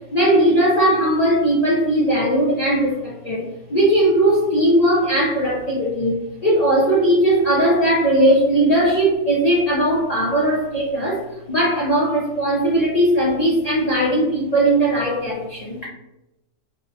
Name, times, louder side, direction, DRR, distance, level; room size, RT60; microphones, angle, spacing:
voice 1, 0.1-15.8, right 1 dB, 60° left, -6 dB, 0.4 m, -18 dB
2.8 x 2.0 x 2.6 m, 0.94 s
omnidirectional pair, 1.4 m